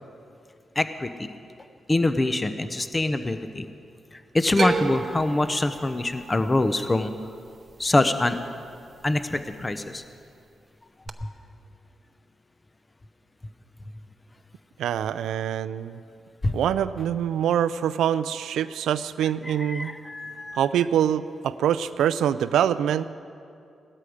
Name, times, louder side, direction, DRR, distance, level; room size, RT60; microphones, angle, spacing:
voice 1, 0.8-1.3 1.9-3.6 4.3-7.1 7.8-8.4 9.0-10.0 11.2-11.3 16.4-16.6 19.2-20.7, left 2 dB, 25° left, 10 dB, 0.9 m, -25 dB
sound 1, 4.6-8.8 9.0-9.7 11.1-11.2, right 4 dB, 45° right, 0.8 m, -32 dB
voice 2, 14.8-16.0 16.5-19.9 20.6-23.1, right 9 dB, 85° right, 14 dB, 0.4 m, -24 dB
17.5 x 13.0 x 5.1 m, 2.4 s
cardioid pair, 55°, 0 cm